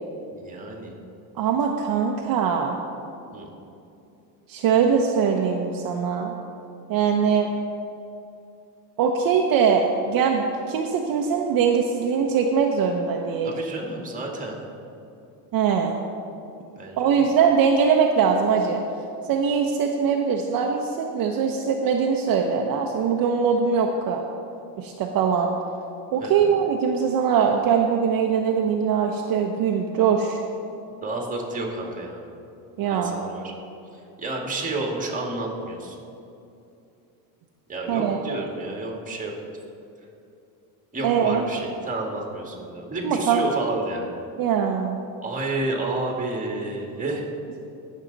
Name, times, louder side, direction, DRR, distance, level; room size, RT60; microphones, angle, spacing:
voice 1, 0.3-0.9 3.3-3.5 13.4-14.6 16.8-17.2 26.2-26.5 31.0-32.3 32.8-33.5 34.2-36.0 37.7-39.3 40.9-44.1 45.2-47.3, right 2 dB, 20° right, 0 dB, 1.9 m, -30 dB
voice 2, 1.4-2.8 4.5-6.3 6.9-7.5 9.0-13.5 15.5-15.9 17.0-18.8 19.3-24.2 24.8-25.5 26.1-30.4 32.8-33.1 37.9-38.2 41.0-41.4 43.0-43.4 44.4-45.0, right 6 dB, 50° right, 1 dB, 0.8 m, -22 dB
16.5 x 6.5 x 4.0 m, 2.7 s
cardioid pair, 120°, 44 cm